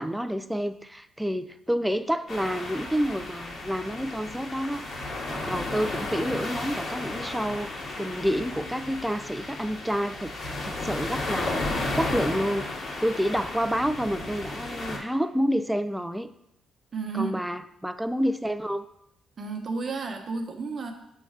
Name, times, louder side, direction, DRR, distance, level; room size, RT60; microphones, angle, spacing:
voice 1, 0.0-4.8 5.2-12.7 13.0-16.3 17.1-18.9, equal, 5° right, 12 dB, 0.4 m, -29 dB
sound 1, 2.3-15.0, left 2 dB, 60° left, 1.6 m, -33 dB
voice 2, 16.9-17.4 19.4-20.9, right 4 dB, 45° right, 4 dB, 1.0 m, -32 dB
7.6 x 3.2 x 4.9 m, 0.80 s
cardioid pair, 90°, 0 cm